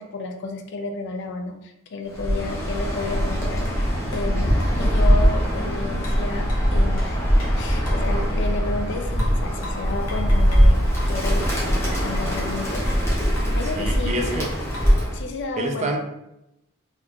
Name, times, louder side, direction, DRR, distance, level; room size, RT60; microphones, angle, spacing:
voice 1, 0.0-7.2 7.6-10.8 11.1-14.5 15.1-16.0, left 3 dB, 55° left, 5 dB, 0.4 m, -32 dB
Bird, 2.1-15.2, equal, 15° left, 0.7 m, -21 dB
sound 1, 3.7-3.8 4.1-4.3 4.6-5.4 6.0-8.1 9.2-10.7 11.0-12.6 12.9-13.1 13.4-13.6 13.9-15.0, left 1 dB, 85° left, 0.9 m, -40 dB
voice 2, 13.6-14.5 15.6-16.0, right 2 dB, 30° right, 2 dB, 0.4 m, -27 dB
2.8 x 2.3 x 3.5 m, 0.87 s
head